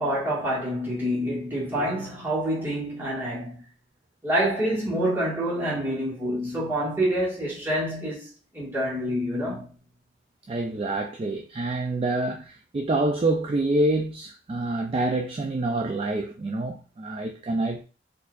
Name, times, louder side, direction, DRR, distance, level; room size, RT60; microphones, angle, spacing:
voice 1, 0.0-3.6 4.2-8.3 8.5-9.7, equal, 10° right, 1.5 m, -27 dB
voice 2, 10.5-17.8, right 2 dB, 30° right, 0.3 m, -27 dB
4.2 x 2.6 x 2.4 m
head